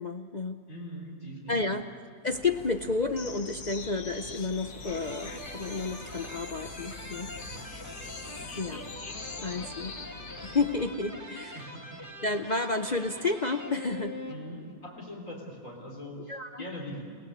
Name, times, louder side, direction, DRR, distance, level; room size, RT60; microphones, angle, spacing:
voice 1, 0.0-0.6 1.5-1.9 2.2-7.3 8.6-8.9 9.4-9.9 10.4-11.7 12.2-14.2 16.3-16.6, left 3 dB, 40° left, 7 dB, 0.7 m, -31 dB
voice 2, 0.7-1.8 7.5-8.0 8.4-8.6 9.4-9.6 11.5-11.9 14.3-17.1, equal, 60° left, -2 dB, 4.2 m, -42 dB
sound 1, 2.3-10.9, left 2 dB, 90° left, 2.2 m, -47 dB
sound 2, 3.1-10.7, left 5 dB, 75° left, 2.0 m, -44 dB
sound 3, 4.8-14.8, equal, 10° right, 2.4 m, -44 dB
30.0 x 18.0 x 8.6 m, 2.1 s
omnidirectional pair, 1.6 m